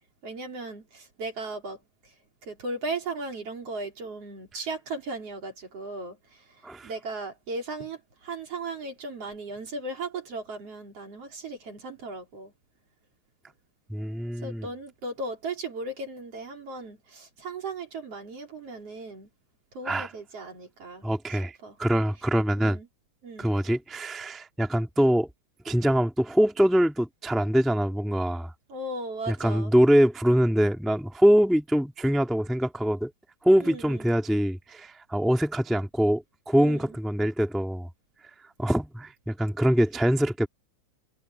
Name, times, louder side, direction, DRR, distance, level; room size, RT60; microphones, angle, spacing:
voice 1, 0.2-2.1 2.4-6.5 6.8-12.5 14.4-19.3 19.7-21.8 22.6-22.9 23.2-23.5 28.7-29.7 33.6-34.1 36.5-37.0, right 2 dB, 40° right, 4.5 m, -37 dB
voice 2, 13.9-14.7 19.8-20.1 21.0-22.8 23.4-25.3 25.6-28.5 29.3-33.1 33.4-37.9 38.6-40.5, equal, ahead, 1.4 m, -24 dB
omnidirectional pair, 4.2 m